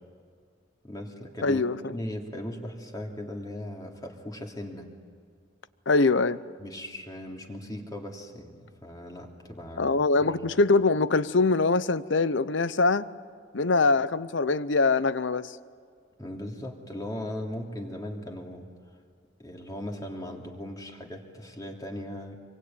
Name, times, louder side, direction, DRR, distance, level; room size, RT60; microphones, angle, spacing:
voice 1, 0.8-1.6 1.9-4.9 6.6-10.5 16.2-18.7 19.4-22.4, left 1 dB, 20° left, 1 dB, 2.9 m, -38 dB
voice 2, 1.4-1.9 5.9-6.4 9.8-13.1 13.5-15.5, left 3 dB, 65° left, 16 dB, 0.8 m, -23 dB
25.5 x 24.0 x 9.1 m, 2.1 s
head